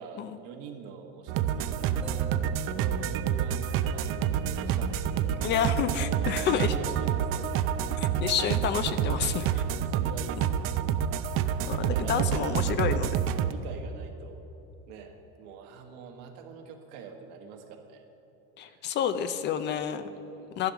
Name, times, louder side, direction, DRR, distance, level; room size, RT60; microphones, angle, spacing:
voice 1, 0.0-5.4 6.0-7.6 9.4-10.7 11.8-13.1 13.5-14.5 14.9-18.0 18.6-18.9 19.1-19.3 20.0-20.7, right 5 dB, 65° right, 4 dB, 1.6 m, -44 dB
sound 1, 1.3-13.5, right 9 dB, 45° right, 0.5 m, -28 dB
sound 2, 2.0-15.1, right 3 dB, ahead, 0.9 m, -53 dB
voice 2, 5.4-6.7 8.0-9.6 10.4-10.5 11.7-13.1 18.6-20.0 20.6-20.7, left 9 dB, 35° left, 11 dB, 0.5 m, -29 dB
11.5 x 11.0 x 5.9 m, 3.0 s
supercardioid pair, 135°, 31 cm